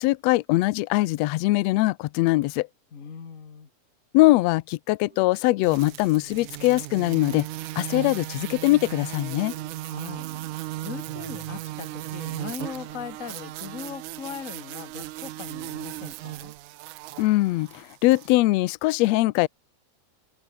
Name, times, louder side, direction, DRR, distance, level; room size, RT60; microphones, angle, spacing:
voice 1, 0.0-2.7 4.1-7.5 7.8-9.5 17.2-19.5, left 19 dB, 75° left, 1.7 m, -22 dB
voice 2, 2.9-3.7 9.8-16.5, left 7 dB, 35° left, 1.6 m, -39 dB
sound 1, 5.1-5.6 6.3-6.8 9.5-10.7 11.1-11.7 12.7-13.2 15.5-16.0 17.1-17.6, right 3 dB, 55° right, 9.2 m, -52 dB
sound 2, 5.6-18.4, right 17 dB, 90° right, 2.3 m, -36 dB
open air
omnidirectional pair, 3.4 m